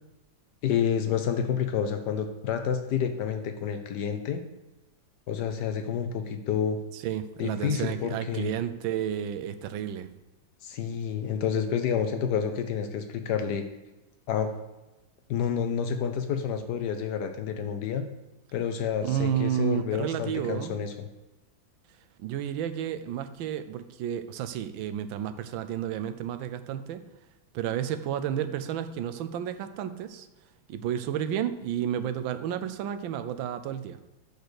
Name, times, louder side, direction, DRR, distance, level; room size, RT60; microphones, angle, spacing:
voice 1, 0.6-4.4 5.3-6.8 7.4-8.5 10.6-13.7 14.3-14.5 15.3-18.1 18.5-20.9, left 7 dB, 70° left, 7 dB, 1.1 m, -29 dB
voice 2, 6.9-10.1 19.0-20.8 22.2-27.0 27.5-30.3 30.7-34.0, right 10 dB, 80° right, 10 dB, 1.3 m, -31 dB
6.4 x 5.2 x 6.4 m, 1.0 s
omnidirectional pair, 2.1 m